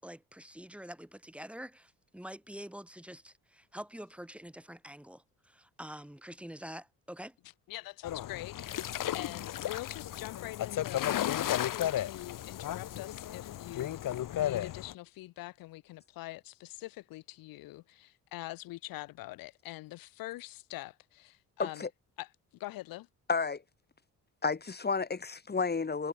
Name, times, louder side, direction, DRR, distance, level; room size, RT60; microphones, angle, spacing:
voice 1, 0.0-7.4, equal, 5° right, 6.6 m, -46 dB
voice 2, 7.7-21.9 22.2-22.3 22.6-23.1, left 18 dB, 90° left, 4.1 m, -44 dB
sound 1, 8.0-14.9, left 12 dB, 70° left, 5.1 m, -34 dB
voice 3, 21.6-21.9 23.3-23.6 24.4-26.1, left 4 dB, 30° left, 4.8 m, -31 dB
cardioid pair, 90°, 34 cm